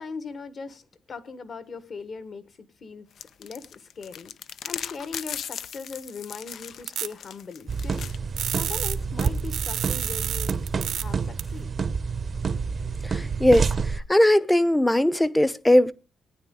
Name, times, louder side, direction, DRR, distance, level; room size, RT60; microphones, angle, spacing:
voice 1, 0.0-4.3 4.6-8.1 8.5-10.6 10.9-11.7, left 4 dB, 50° left, 1.4 m, -39 dB
sound 1, 3.2-8.2, left 8 dB, 65° left, 0.5 m, -38 dB
sound 2, 6.9-7.1 8.4-11.0 11.4-11.5, right 10 dB, 80° right, 1.1 m, -30 dB
sound 3, 7.7-14.0, right 5 dB, 40° right, 0.8 m, -28 dB
voice 2, 13.0-15.9, left 1 dB, 10° left, 0.8 m, -20 dB
18.5 x 9.5 x 3.8 m
cardioid pair, 90°, 0 cm